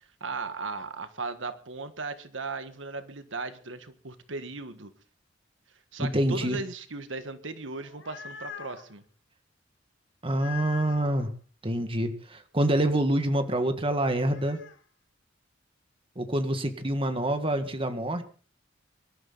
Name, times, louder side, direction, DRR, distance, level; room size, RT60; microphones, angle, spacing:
voice 1, 0.0-4.9 5.9-9.0, right 3 dB, 85° right, 10 dB, 1.5 m, -37 dB
voice 2, 6.0-6.6 10.2-11.3 11.6-14.6 16.2-18.2, right 1 dB, 30° right, 7 dB, 1.8 m, -26 dB
sound 1, 7.8-8.9 10.3-11.2 14.1-14.8, left 8 dB, 70° left, 2.1 m, -43 dB
24.5 x 12.5 x 4.1 m, 0.39 s
head